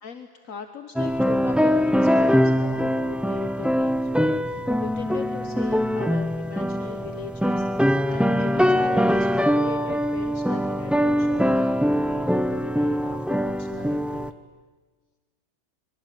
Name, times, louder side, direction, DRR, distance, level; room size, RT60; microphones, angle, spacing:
voice 1, 0.0-14.3, left 6 dB, 65° left, 7 dB, 1.6 m, -39 dB
sound 1, 1.0-14.3, equal, ahead, 0.4 m, -22 dB
25.0 x 23.0 x 9.2 m, 1.4 s
omnidirectional pair, 1.5 m